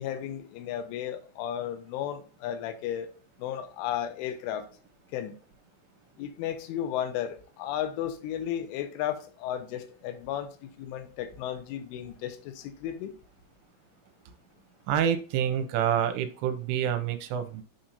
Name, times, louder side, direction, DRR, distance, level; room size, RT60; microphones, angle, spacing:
voice 1, 0.0-3.1 3.4-4.6 5.1-5.4 6.2-13.2, left 10 dB, 80° left, 3.3 m, -34 dB
voice 2, 14.9-17.6, right 9 dB, 85° right, 3.1 m, -27 dB
9.2 x 4.4 x 2.6 m
omnidirectional pair, 5.8 m